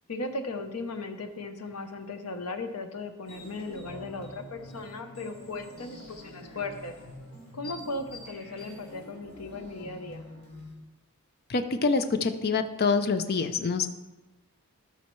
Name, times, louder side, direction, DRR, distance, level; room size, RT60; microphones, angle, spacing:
voice 1, 0.1-6.9 7.5-10.3, left 2 dB, 90° left, 7 dB, 0.8 m, -37 dB
sound 1, 3.2-10.7, left 1 dB, 70° left, 3.0 m, -46 dB
voice 2, 11.5-13.9, left 4 dB, 45° left, 9 dB, 0.5 m, -26 dB
13.0 x 5.6 x 3.1 m, 1.1 s
head